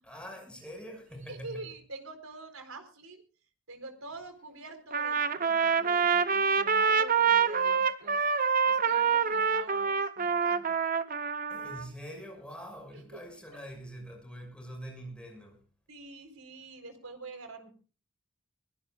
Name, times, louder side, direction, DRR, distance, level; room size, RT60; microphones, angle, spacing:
voice 1, 0.0-1.6 11.5-15.6, equal, 5° left, 6.1 m, -44 dB
voice 2, 1.3-3.2 3.7-8.2 8.6-10.6 12.9-13.2 15.9-17.7, right 3 dB, 80° right, 4.2 m, -45 dB
Trumpet, 4.9-11.8, right 6 dB, 40° right, 0.9 m, -26 dB
23.5 x 17.0 x 2.4 m
head